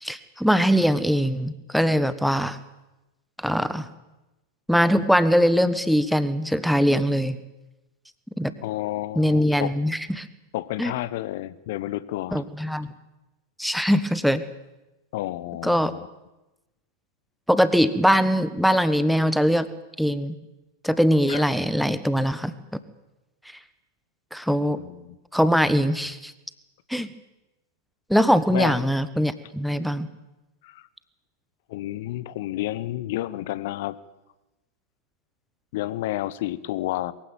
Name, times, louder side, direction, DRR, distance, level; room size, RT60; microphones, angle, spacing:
voice 1, 0.0-2.6 3.4-3.9 4.7-7.4 8.4-8.5 9.1-10.3 10.8-10.9 12.3-12.9 13.6-14.4 15.6-15.9 17.5-19.7 20.0-20.3 20.8-22.5 24.3-24.8 25.3-26.3 26.9-27.1 28.1-30.1, equal, ahead, 14 dB, 1.2 m, -21 dB
voice 2, 8.6-9.7 10.5-12.4 15.1-16.1 21.3-21.4 24.8-25.2 28.5-28.8 30.6-30.8 31.7-34.0 35.7-37.1, left 15 dB, 50° left, 18 dB, 0.9 m, -30 dB
22.5 x 15.5 x 9.3 m, 1.0 s
figure-of-eight pair, 90°, 0 cm